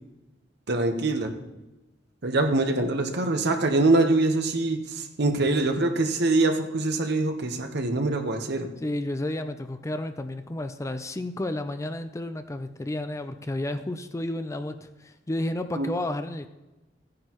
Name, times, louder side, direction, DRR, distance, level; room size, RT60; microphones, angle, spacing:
voice 1, 0.7-1.3 2.2-8.7 15.8-15.9, right 2 dB, 60° right, 6 dB, 1.1 m, -24 dB
voice 2, 8.8-16.5, left 1 dB, 15° left, 9 dB, 0.4 m, -31 dB
15.0 x 9.7 x 3.1 m, 1.1 s
head